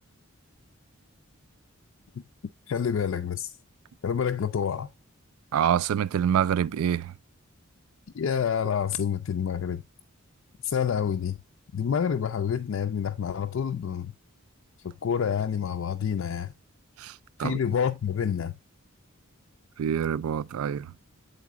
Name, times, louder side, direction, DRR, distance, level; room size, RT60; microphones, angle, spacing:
voice 1, 2.7-3.5 4.0-4.9 8.1-9.8 10.6-11.4 11.7-14.1 14.8-16.5 17.4-18.5, left 7 dB, 60° left, 0.4 m, -28 dB
voice 2, 5.5-7.1 17.0-17.1 17.4-17.6 19.8-20.9, right 8 dB, 75° right, 0.3 m, -26 dB
8.4 x 3.9 x 3.5 m
head